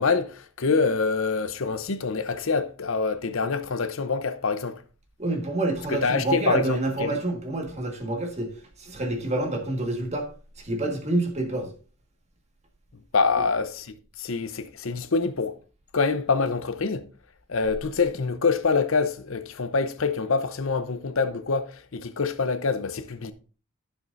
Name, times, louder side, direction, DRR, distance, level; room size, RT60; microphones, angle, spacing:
voice 1, 0.0-4.8 5.9-7.2 12.9-15.6 15.9-17.1 17.5-23.3, left 4 dB, 65° left, 0.7 m, -26 dB
voice 2, 5.2-8.5 8.8-10.3 10.6-11.7 13.4-13.5, right 2 dB, 30° right, 1.6 m, -27 dB
14.5 x 5.9 x 2.6 m
head